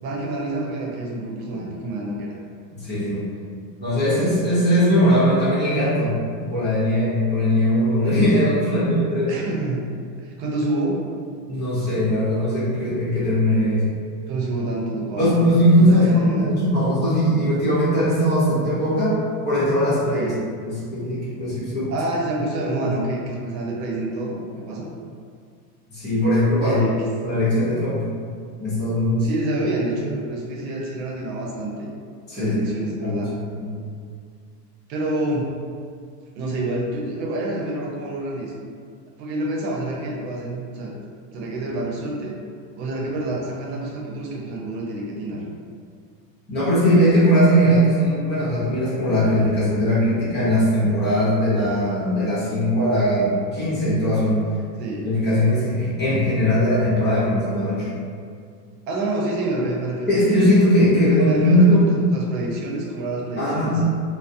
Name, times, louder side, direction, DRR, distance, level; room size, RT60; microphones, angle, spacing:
voice 1, 0.0-2.3 9.3-9.8 10.2-11.0 14.3-16.6 20.1-20.4 21.9-24.4 24.7-24.9 26.6-27.0 29.2-31.9 32.3-33.3 34.9-35.5 36.3-38.5 39.2-40.9 41.3-42.4 42.8-45.4 54.8-55.1 58.9-60.2 60.9-63.9, right 2 dB, 80° right, -2 dB, 0.7 m, -27 dB
voice 2, 2.7-3.2 3.8-9.3 11.5-13.9 15.1-19.1 19.4-20.3 20.6-21.9 22.8-23.0 25.9-26.8 27.2-28.0 28.6-29.3 32.3-32.7 33.0-33.2 33.5-33.8 45.3-45.4 46.5-54.4 55.0-57.9 60.1-61.9 63.4-63.8, equal, 20° left, -10 dB, 0.8 m, -19 dB
2.3 x 2.0 x 2.6 m, 2.1 s
supercardioid pair, 130°, 49 cm